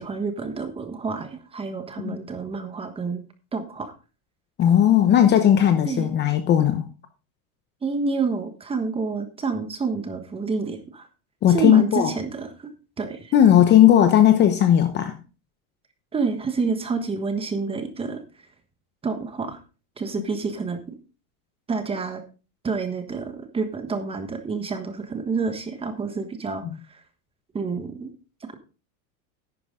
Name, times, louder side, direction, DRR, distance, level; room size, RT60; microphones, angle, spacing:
voice 1, 0.0-3.2 3.5-3.9 5.9-6.1 7.8-11.1 11.5-12.7 13.0-13.3 16.1-18.2 19.0-19.6 20.0-21.0 21.7-22.2 22.6-26.6 27.5-28.1, right 4 dB, 15° right, 1.3 m, -28 dB
voice 2, 4.6-6.8 11.4-12.1 13.3-15.1, left 10 dB, 25° left, 0.9 m, -17 dB
11.0 x 9.3 x 3.7 m
supercardioid pair, 155°, 44 cm